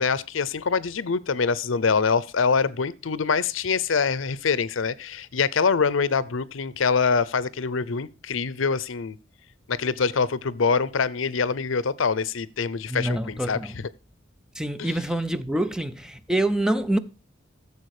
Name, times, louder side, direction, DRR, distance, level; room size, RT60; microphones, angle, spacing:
voice 1, 0.0-9.2 9.7-13.7 14.8-15.0, left 5 dB, 80° left, 0.7 m, -24 dB
voice 2, 12.9-13.7 14.6-17.0, right 1 dB, 5° right, 0.6 m, -26 dB
14.5 x 7.0 x 4.9 m
head